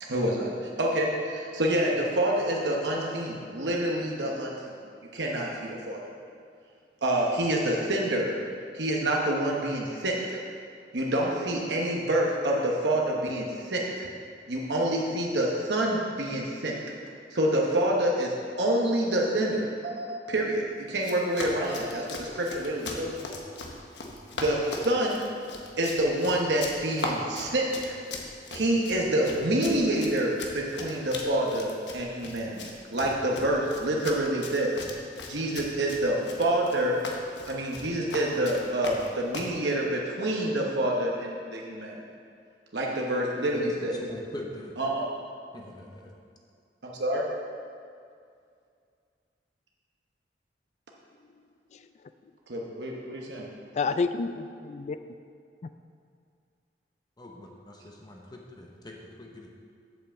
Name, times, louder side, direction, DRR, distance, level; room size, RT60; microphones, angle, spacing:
voice 1, 0.1-4.5 5.1-6.0 7.0-8.4 8.7-10.4 10.9-14.1 14.5-16.7 17.3-23.1 24.3-25.2 25.8-28.0 28.5-34.9 35.3-37.0 37.5-41.9 42.7-44.0 44.8-45.1 46.8-47.2 52.5-53.5, right 1 dB, 75° right, -2 dB, 1.1 m, -27 dB
Run, 20.9-39.6, left 3 dB, 90° left, 1.1 m, -39 dB
voice 2, 43.5-44.8 45.5-46.1 57.2-59.5, left 1 dB, 25° left, 0 dB, 0.9 m, -43 dB
voice 3, 51.2-52.1 53.6-55.0 55.6-55.7, left 4 dB, 40° left, 11 dB, 0.3 m, -31 dB
7.7 x 5.7 x 7.2 m, 2.3 s
head